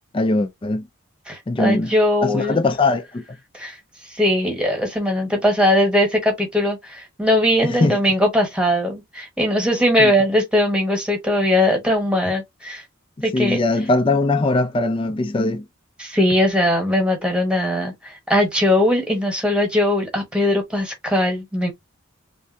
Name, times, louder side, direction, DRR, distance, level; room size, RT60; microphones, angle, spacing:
voice 1, 0.1-0.8 1.5-1.9 2.2-3.2 7.6-8.0 10.0-10.1 13.3-15.6, left 2 dB, 25° left, 0.3 m, -20 dB
voice 2, 1.3-2.6 3.5-3.8 4.1-12.8 13.2-13.6 16.0-21.7, left 1 dB, 5° right, 1.1 m, -20 dB
3.2 x 2.5 x 2.6 m
head